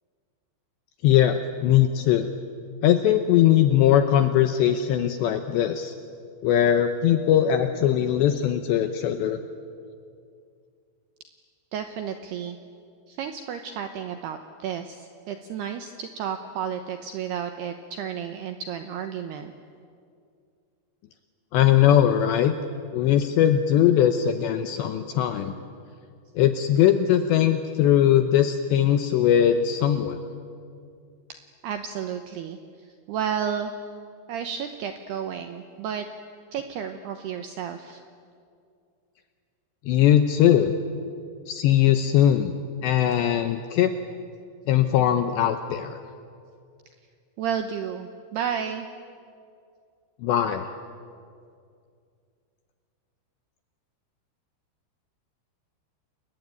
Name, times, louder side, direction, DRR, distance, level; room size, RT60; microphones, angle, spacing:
voice 1, 1.0-2.3 2.8-5.9 6.4-9.4 21.5-22.5 22.9-25.5 26.4-30.2 39.9-40.7 41.5-42.6 42.8-43.9 44.7-46.0 50.2-50.7, left 10 dB, 80° left, 8 dB, 2.6 m, -20 dB
voice 2, 11.7-12.6 13.1-19.5 31.6-33.7 34.3-36.1 36.5-38.0 43.2-43.3 47.4-48.9, right 8 dB, 80° right, 7 dB, 2.4 m, -32 dB
29.5 x 21.5 x 9.4 m, 2.3 s
omnidirectional pair, 6.0 m